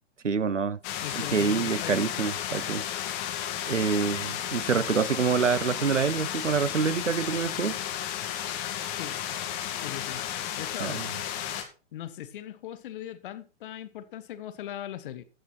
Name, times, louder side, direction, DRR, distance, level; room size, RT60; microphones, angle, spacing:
voice 1, 0.2-0.8 1.2-2.8 3.7-7.8 10.8-11.1, right 6 dB, 85° right, 1.0 m, -26 dB
sound 1, 0.8-11.6, left 10 dB, 30° left, 2.0 m, -33 dB
voice 2, 1.0-2.1 8.9-9.2 9.8-10.2 10.5-11.0 11.9-15.2, left 11 dB, 45° left, 1.4 m, -39 dB
15.5 x 6.0 x 4.4 m
figure-of-eight pair, 120°, 36 cm